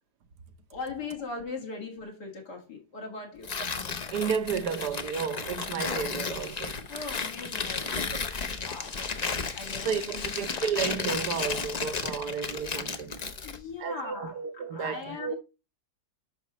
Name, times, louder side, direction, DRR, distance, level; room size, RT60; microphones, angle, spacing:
voice 1, 0.7-3.5 6.9-8.1 8.6-10.5 13.4-15.4, left 4 dB, 85° left, 2.6 m, -40 dB
Tearing, 3.4-13.6, left 5 dB, 45° left, 0.5 m, -33 dB
voice 2, 4.1-6.8 9.8-13.2 13.8-15.3, right 7 dB, 80° right, 1.5 m, -32 dB
9.9 x 5.9 x 3.0 m
omnidirectional pair, 1.7 m